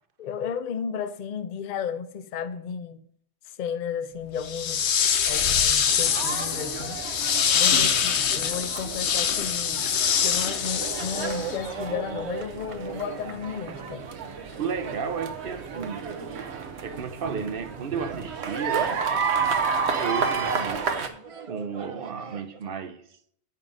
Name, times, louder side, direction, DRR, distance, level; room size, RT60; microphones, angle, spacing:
voice 1, 0.2-3.0 3.5-7.0 7.5-9.9 10.2-14.0, left 7 dB, 55° left, 0.6 m, -34 dB
sound 1, 4.4-11.7, left 8 dB, 85° left, 1.0 m, -24 dB
sound 2, 5.9-21.1, right 5 dB, 80° right, 1.2 m, -31 dB
voice 2, 7.7-8.0 13.7-13.8 14.6-16.2 16.8-19.5 19.9-21.0 21.5-23.0, right 6 dB, 60° right, 0.9 m, -33 dB
sound 3, 8.8-17.2 17.6-18.6 18.9-22.7, right 5 dB, 40° right, 0.5 m, -41 dB
9.0 x 5.5 x 5.2 m
omnidirectional pair, 1.1 m